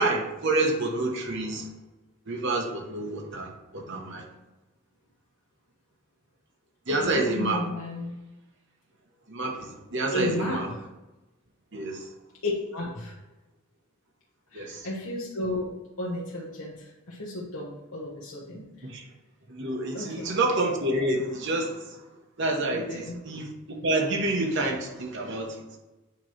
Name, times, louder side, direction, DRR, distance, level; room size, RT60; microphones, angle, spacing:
voice 1, 0.0-1.7 2.3-4.2 6.9-7.6 9.3-10.7 11.7-12.1 14.5-14.9 18.8-19.0 19.5-22.0 22.4-23.5 23.8-25.6, right 2 dB, 50° right, 1 dB, 0.9 m, -28 dB
voice 2, 6.9-8.2 10.1-10.9 12.4-13.2 14.5-18.9 19.9-20.3 22.7-23.2, left 1 dB, 70° left, -5 dB, 1.1 m, -33 dB
8.9 x 3.0 x 4.5 m, 1.1 s
head